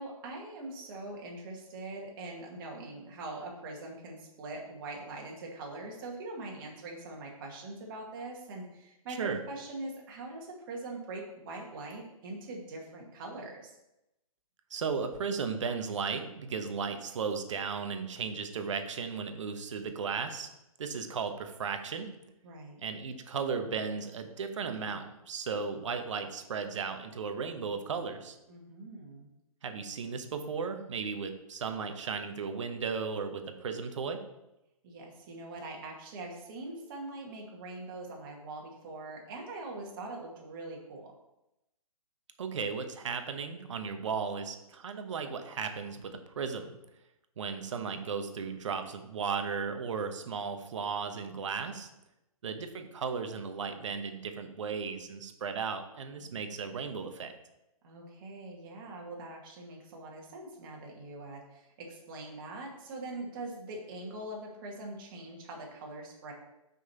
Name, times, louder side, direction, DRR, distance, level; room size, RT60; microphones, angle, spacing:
voice 1, 0.0-13.7 22.4-22.8 28.5-29.3 34.8-41.1 57.8-66.3, right 2 dB, 35° right, -1 dB, 2.1 m, -43 dB
voice 2, 14.7-20.5 20.8-22.1 22.8-28.4 29.6-34.2 42.4-46.7 47.4-51.9 52.4-57.3, right 5 dB, 55° right, 7 dB, 1.1 m, -35 dB
6.1 x 5.5 x 4.4 m, 0.89 s
figure-of-eight pair, 140°, 19 cm